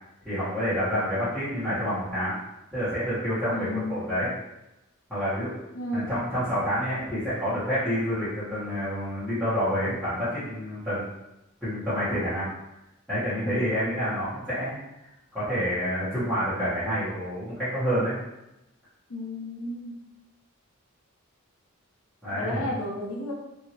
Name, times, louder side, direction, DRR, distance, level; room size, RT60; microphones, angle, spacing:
voice 1, 0.2-2.3 2.7-4.3 5.1-5.5 5.9-11.0 11.6-12.5 13.1-14.8 15.3-18.2 22.2-22.6, equal, 5° right, -18 dB, 1.3 m, -28 dB
voice 2, 3.5-4.0 5.7-6.2 13.4-13.8 19.1-20.0 22.3-23.3, left 1 dB, 85° left, -3 dB, 0.7 m, -33 dB
2.8 x 2.7 x 2.9 m, 0.93 s
head